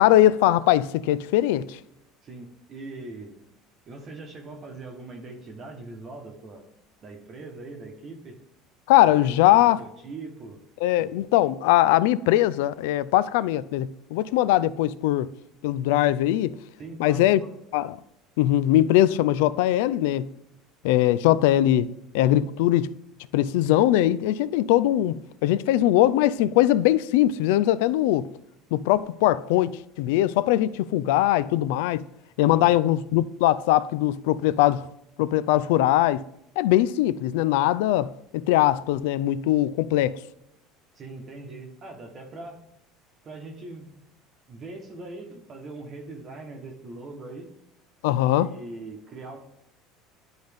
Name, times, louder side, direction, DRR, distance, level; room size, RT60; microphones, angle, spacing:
voice 1, 0.0-1.8 8.9-9.8 10.8-15.3 15.6-16.6 17.0-17.4 17.7-18.0 18.4-20.3 20.8-22.9 23.3-28.3 28.7-32.0 32.4-34.8 35.2-36.2 36.6-40.2 48.0-48.5, left 14 dB, 85° left, 0.3 m, -21 dB
voice 2, 2.2-3.4 3.9-6.7 7.0-8.4 9.0-10.6 16.8-17.5 21.3-21.4 32.4-32.8 40.9-42.7 43.2-43.9 44.5-47.5 48.3-49.4, right 2 dB, 30° right, 1.0 m, -41 dB
11.5 x 3.9 x 3.4 m
cardioid pair, 160°, 0 cm